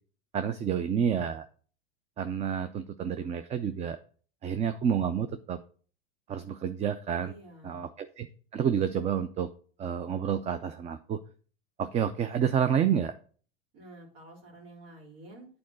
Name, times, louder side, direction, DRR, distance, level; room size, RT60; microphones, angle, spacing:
voice 1, 0.3-1.5 2.2-4.0 4.4-5.6 6.3-7.3 7.6-8.3 8.5-9.5 9.8-11.2 11.8-13.1, right 8 dB, 20° right, 11 dB, 0.4 m, -29 dB
voice 2, 7.2-7.9 13.7-15.5, right 1 dB, 65° right, -1 dB, 3.6 m, -50 dB
8.5 x 4.7 x 6.2 m, 0.43 s
supercardioid pair, 120°, 30 cm